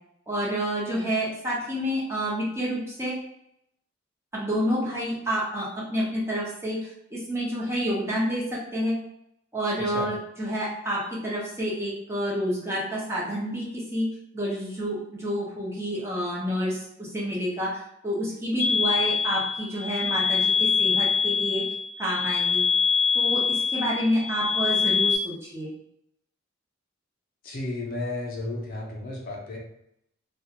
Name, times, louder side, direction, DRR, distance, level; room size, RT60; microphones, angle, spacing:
voice 1, 0.3-3.2 4.3-6.8 7.1-9.0 9.5-14.1 14.3-21.6 22.0-22.6 23.1-25.7, equal, 15° right, -6 dB, 0.6 m, -29 dB
sound 1, 18.6-25.2, left 5 dB, 90° left, 0.6 m, -24 dB
voice 2, 27.4-29.6, left 2 dB, 45° left, -2 dB, 0.6 m, -33 dB
2.3 x 2.1 x 2.8 m, 0.77 s
head